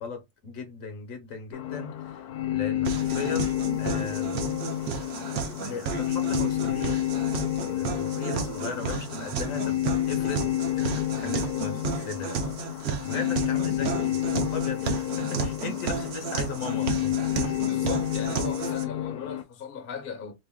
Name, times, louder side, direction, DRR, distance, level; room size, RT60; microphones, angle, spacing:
voice 1, 0.0-2.2 2.5-4.3 5.6-7.0 7.6-10.5 10.8-12.4 13.0-17.6, left 4 dB, 65° left, 1.1 m, -37 dB
sound 1, 1.5-19.4, left 13 dB, 90° left, 1.1 m, -29 dB
sound 2, 2.8-18.8, right 6 dB, 65° right, 0.9 m, -33 dB
voice 2, 17.6-20.3, left 6 dB, 50° left, 0.8 m, -38 dB
2.9 x 2.5 x 3.4 m
omnidirectional pair, 1.6 m